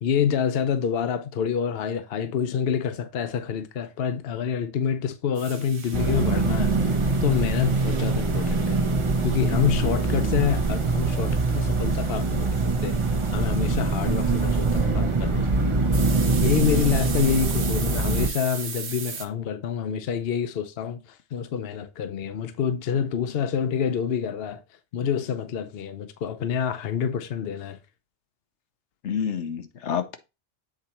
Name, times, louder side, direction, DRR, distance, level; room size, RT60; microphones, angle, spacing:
voice 1, 0.0-8.8 9.2-12.5 12.8-13.0 13.3-15.7 16.4-24.6 24.9-27.8, left 7 dB, 60° left, 0.9 m, -27 dB
sound 1, 5.4-14.9 15.9-19.3, right 6 dB, 70° right, 1.3 m, -39 dB
sound 2, 5.9-18.3, right 3 dB, 30° right, 0.8 m, -23 dB
voice 2, 29.0-30.2, left 7 dB, 80° left, 1.2 m, -28 dB
7.7 x 4.1 x 4.3 m
omnidirectional pair, 1.2 m